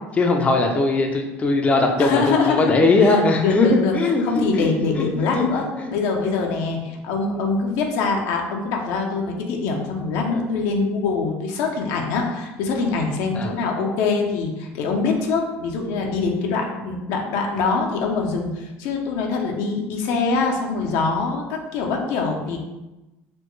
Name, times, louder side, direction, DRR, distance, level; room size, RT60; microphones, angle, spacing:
voice 1, 0.1-5.4 5.8-5.9 6.2-6.3 13.3-13.5, left 3 dB, 25° left, 2 dB, 0.5 m, -20 dB
voice 2, 2.0-3.2 3.4-3.9 4.2-22.6, left 4 dB, 75° left, 1 dB, 0.6 m, -24 dB
4.2 x 2.2 x 3.1 m, 1.0 s
supercardioid pair, 100°, 6 cm